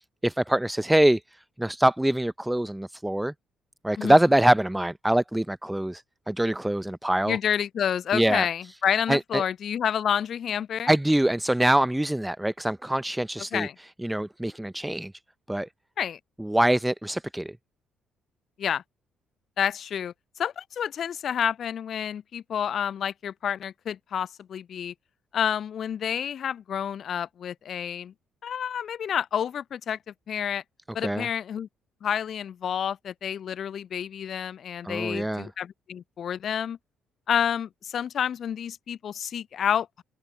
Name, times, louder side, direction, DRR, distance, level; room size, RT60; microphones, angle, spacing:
voice 1, 0.2-1.2 1.6-3.3 3.8-7.4 8.1-8.5 9.1-9.4 10.9-13.7 14.0-15.1 15.5-15.7 16.4-17.5 31.0-31.3 34.8-35.5, right 1 dB, 5° right, 0.7 m, -24 dB
voice 2, 7.3-10.9 13.5-13.7 16.0-16.2 18.6-18.8 19.6-20.1 20.4-24.9 25.3-28.1 28.4-30.0 30.3-30.6 30.9-31.7 32.0-36.8 37.3-40.0, left 8 dB, 50° left, 0.5 m, -29 dB
figure-of-eight pair, 45°, 0 cm